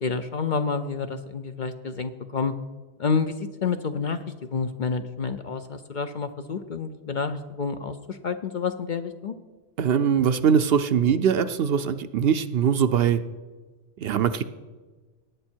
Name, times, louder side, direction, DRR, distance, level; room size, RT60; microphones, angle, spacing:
voice 1, 0.0-2.5 3.0-9.3, left 5 dB, 50° left, 8 dB, 0.7 m, -29 dB
voice 2, 9.8-13.2 14.0-14.4, right 7 dB, 65° right, 11 dB, 0.7 m, -22 dB
18.0 x 9.6 x 4.5 m, 1.3 s
omnidirectional pair, 1.2 m